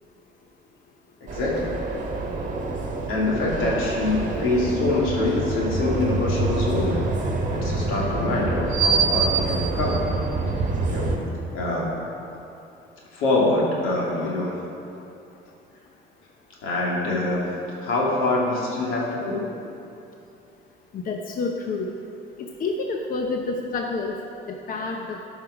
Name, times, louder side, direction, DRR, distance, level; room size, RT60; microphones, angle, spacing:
voice 1, 1.2-1.7 3.1-7.0 7.5-10.1 10.6-11.2 11.5-12.0 13.1-14.6 16.6-17.5 17.8-19.5, left 2 dB, 85° left, -4 dB, 2.5 m, -25 dB
sound 1, 1.3-11.2, right 3 dB, 40° right, 1.4 m, -26 dB
voice 2, 20.9-21.9 22.4-24.2 24.5-25.2, left 3 dB, 45° left, 2 dB, 0.7 m, -28 dB
13.0 x 5.6 x 5.0 m, 2.8 s
cardioid pair, 110°, 21 cm